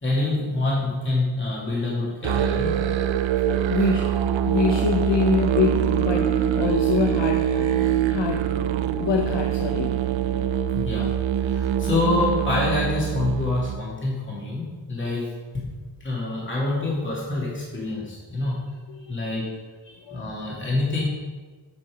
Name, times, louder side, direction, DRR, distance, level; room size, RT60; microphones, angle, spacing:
voice 1, 0.0-2.8 10.7-11.1 11.4-15.3 15.5-15.7 16.0-18.6 19.1-19.5 20.1-21.0, left 2 dB, 25° left, -6 dB, 2.5 m, -26 dB
Musical instrument, 2.2-13.8, right 9 dB, 80° right, 0.6 m, -24 dB
voice 2, 3.7-8.5 8.9-10.0 18.9-19.5 19.9-20.4, left 4 dB, 70° left, 3 dB, 0.8 m, -26 dB
8.6 x 5.9 x 5.0 m, 1.4 s
wide cardioid pair, 100°, 45 cm